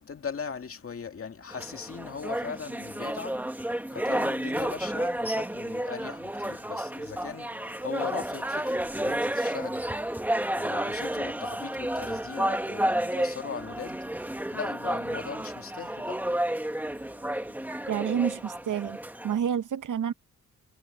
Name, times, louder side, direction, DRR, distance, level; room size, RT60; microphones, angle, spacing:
voice 1, 0.0-17.9, left 6 dB, 45° left, 2.2 m, -40 dB
sound 1, 1.5-19.4, right 1 dB, 5° right, 1.3 m, -31 dB
voice 2, 17.9-19.0 19.2-20.1, right 8 dB, 70° right, 0.8 m, -28 dB
wide cardioid pair, 145°, 32 cm